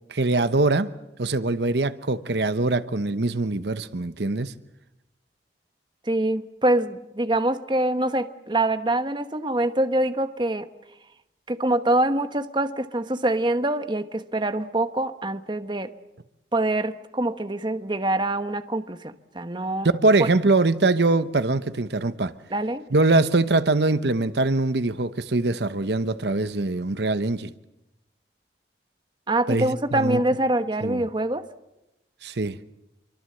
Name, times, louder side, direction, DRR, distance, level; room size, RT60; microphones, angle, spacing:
voice 1, 0.1-0.9 1.2-4.5 19.9-22.3 22.9-27.5 29.5-30.2 30.8-31.0 32.2-32.6, right 2 dB, 70° right, 0.9 m, -23 dB
voice 2, 6.1-10.7 11.5-15.9 16.5-19.9 22.5-22.9 29.3-31.5, right 1 dB, 25° right, 1.1 m, -25 dB
27.0 x 24.0 x 7.8 m
head